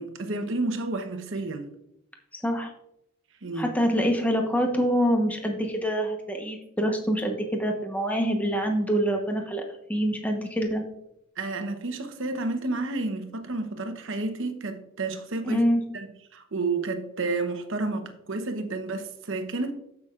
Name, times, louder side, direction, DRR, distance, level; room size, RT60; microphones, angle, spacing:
voice 1, 0.0-1.7 3.4-3.8 11.4-15.6 15.9-19.7, right 3 dB, 60° right, 0.9 m, -31 dB
voice 2, 3.5-9.6 9.9-10.8 15.4-15.8, equal, 5° left, 1.0 m, -25 dB
14.0 x 6.0 x 2.5 m
head